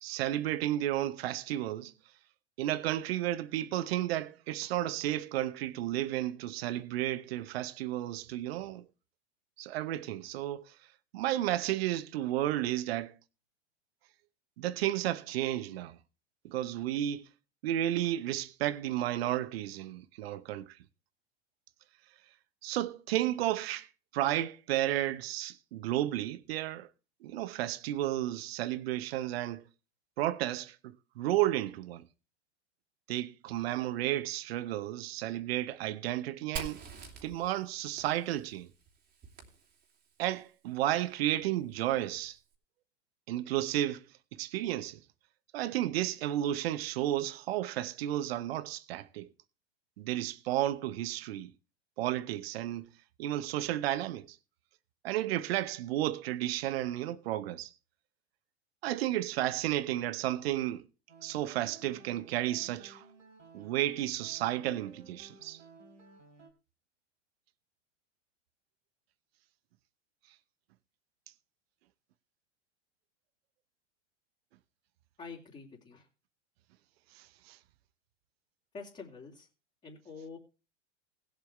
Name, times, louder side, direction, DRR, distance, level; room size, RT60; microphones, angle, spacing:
voice 1, 0.0-1.9 2.6-8.9 9.6-10.7 11.1-13.1 14.6-16.0 16.4-17.3 17.6-20.8 22.6-23.9 24.1-26.9 27.2-29.6 30.2-32.1 33.1-36.8 37.2-38.7 40.2-42.4 43.3-44.0 44.3-45.0 45.5-49.3 50.0-51.5 52.0-52.9 53.2-54.4 55.0-57.7 58.8-60.8 61.2-63.0 63.5-65.6 77.2-77.6, right 13 dB, 55° right, 1.0 m, -32 dB
Fire, 36.6-40.2, right 6 dB, 25° right, 3.1 m, -46 dB
sound 1, 61.1-66.5, right 3 dB, 80° right, 3.4 m, -55 dB
voice 2, 75.2-76.1 78.7-79.5 79.8-80.4, left 4 dB, 20° left, 3.3 m, -46 dB
20.0 x 7.8 x 3.3 m
figure-of-eight pair, 95°, 36 cm